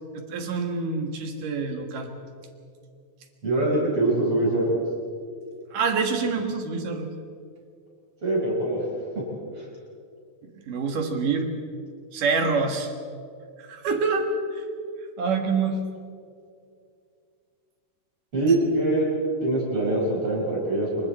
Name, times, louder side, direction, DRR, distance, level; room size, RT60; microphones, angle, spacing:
voice 1, 0.1-2.1 5.7-7.1 10.7-11.5 12.1-12.9 13.6-14.3 14.5-14.6 15.2-15.8, right 4 dB, 60° right, 4 dB, 3.0 m, -26 dB
voice 2, 3.4-4.8 8.2-8.9 9.1-9.2 9.6-9.7 18.3-19.1 19.4-21.1, right 2 dB, 30° right, -4 dB, 6.0 m, -23 dB
27.0 x 24.0 x 4.3 m, 2.3 s
omnidirectional pair, 4.9 m